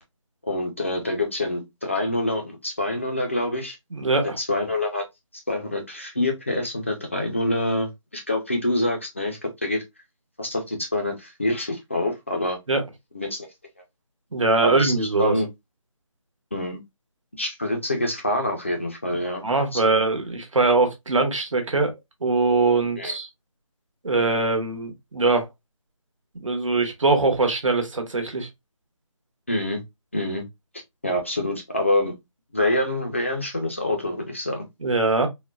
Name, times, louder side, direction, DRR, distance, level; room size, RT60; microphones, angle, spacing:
voice 1, 0.5-3.8 4.4-5.0 5.5-9.8 10.4-12.6 13.1-13.5 14.6-15.5 16.5-16.8 17.3-19.4 19.7-19.8 23.0-23.2 29.5-29.8 30.1-30.5 31.0-32.1 32.5-34.6, left 1 dB, 25° left, 0.4 m, -26 dB
voice 2, 3.9-4.4 12.7-12.8 14.3-15.4 19.4-21.9 22.2-23.3 24.0-25.5 26.4-28.5 34.8-35.3, right 3 dB, 70° right, 1.1 m, -22 dB
3.7 x 2.1 x 2.3 m
figure-of-eight pair, 170°, 17 cm